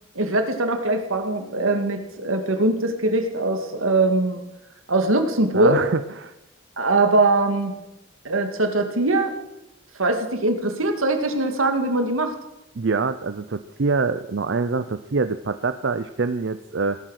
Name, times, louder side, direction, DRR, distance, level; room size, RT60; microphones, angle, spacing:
voice 1, 0.2-4.4 4.9-5.8 6.8-7.7 8.2-9.3 10.0-12.3, right 2 dB, 85° right, 6 dB, 2.2 m, -21 dB
voice 2, 5.5-6.3 12.8-17.0, right 4 dB, 60° right, 11 dB, 0.5 m, -25 dB
17.5 x 11.5 x 6.5 m, 0.91 s
head